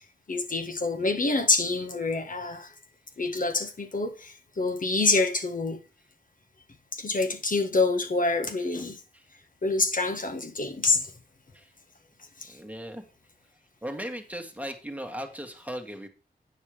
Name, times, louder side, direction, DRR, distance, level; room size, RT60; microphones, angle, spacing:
voice 1, 0.3-2.7 3.2-5.8 6.9-9.0 9.6-11.1 12.4-12.5, left 3 dB, 55° left, 1.4 m, -26 dB
voice 2, 12.5-13.0 13.8-16.1, equal, 10° right, 1.7 m, -37 dB
9.2 x 5.4 x 4.9 m
cardioid pair, 60°, 17 cm